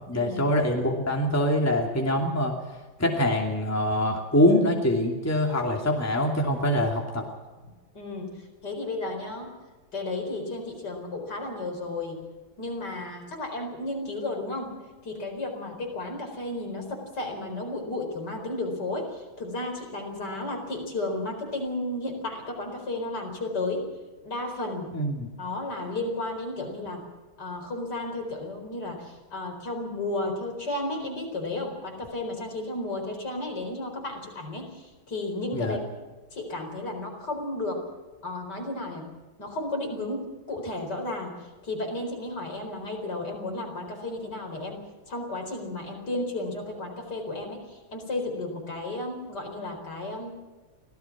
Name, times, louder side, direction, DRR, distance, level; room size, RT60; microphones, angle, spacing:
voice 1, 0.1-2.5 3.0-7.2 24.9-25.3 35.5-35.8, left 1 dB, 5° left, 1 dB, 2.6 m, -24 dB
voice 2, 7.9-9.5 9.9-12.2 12.6-14.7 15.0-23.9 24.2-25.0 25.4-27.1 27.4-35.8 36.3-37.9 38.2-39.1 39.4-41.4 41.6-44.8 45.1-50.3, left 2 dB, 55° left, 2 dB, 5.0 m, -33 dB
25.0 x 17.0 x 6.1 m, 1.3 s
omnidirectional pair, 2.2 m